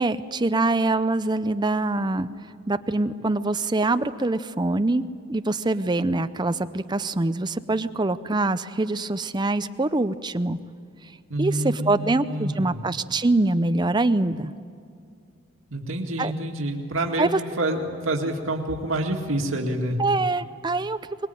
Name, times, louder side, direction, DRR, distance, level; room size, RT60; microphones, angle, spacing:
voice 1, 0.0-2.3 2.7-10.6 11.4-14.5 16.2-16.3 17.2-17.4 20.0-21.3, right 2 dB, 20° right, 11 dB, 0.6 m, -24 dB
voice 2, 11.3-12.8 15.7-20.0, right 1 dB, 90° right, 1 dB, 2.1 m, -27 dB
23.0 x 21.0 x 9.2 m, 2.2 s
head